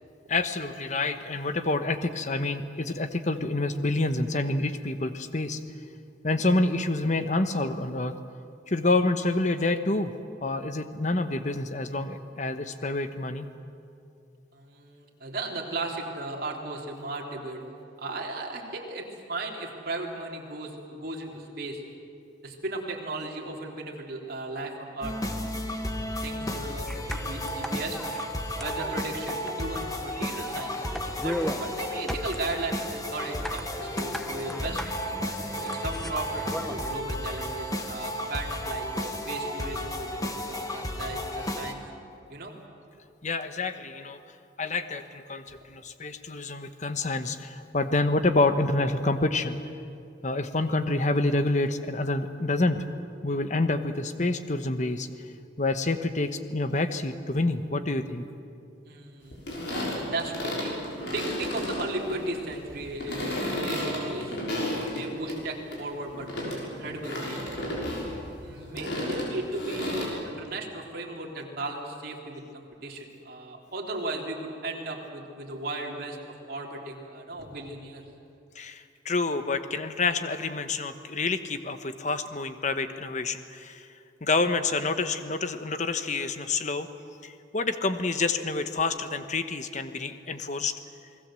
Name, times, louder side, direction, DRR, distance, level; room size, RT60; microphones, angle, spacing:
voice 1, 0.3-5.6 6.2-8.2 8.7-10.2 10.4-13.5 43.2-44.2 44.6-49.6 50.2-52.9 53.2-55.1 55.6-58.3 78.5-83.9 84.2-86.9 87.2-90.7, left 2 dB, 40° left, 9 dB, 1.1 m, -28 dB
voice 2, 14.5-17.6 18.0-21.8 22.4-25.6 25.9-28.0 28.6-30.9 31.1-34.8 35.6-41.8 42.3-42.5 58.9-60.8 61.1-67.7 68.4-76.2 76.5-78.0, right 2 dB, 55° right, -1 dB, 3.5 m, -36 dB
sound 1, 25.0-41.7, left 1 dB, 20° left, 1.6 m, -33 dB
sound 2, 26.9-36.9, equal, ahead, 1.0 m, -38 dB
sound 3, 59.3-65.4 65.7-70.1, left 1 dB, 65° left, 6.2 m, -33 dB
29.0 x 20.0 x 7.7 m, 2.5 s
head